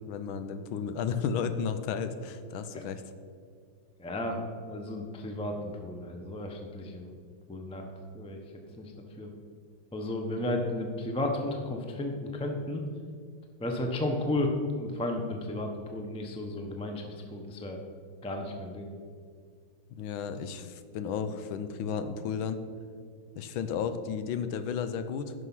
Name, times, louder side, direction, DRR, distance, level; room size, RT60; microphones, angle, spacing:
voice 1, 0.0-3.0 19.9-22.6 23.4-25.3, left 6 dB, 80° left, 10 dB, 1.5 m, -33 dB
voice 2, 4.0-4.4 4.6-7.2 7.5-7.9 8.1-8.4 8.8-9.3 9.9-12.8 13.6-17.8 18.2-18.9, left 1 dB, 10° left, 3 dB, 0.3 m, -33 dB
10.5 x 6.5 x 5.6 m, 2.1 s
omnidirectional pair, 2.2 m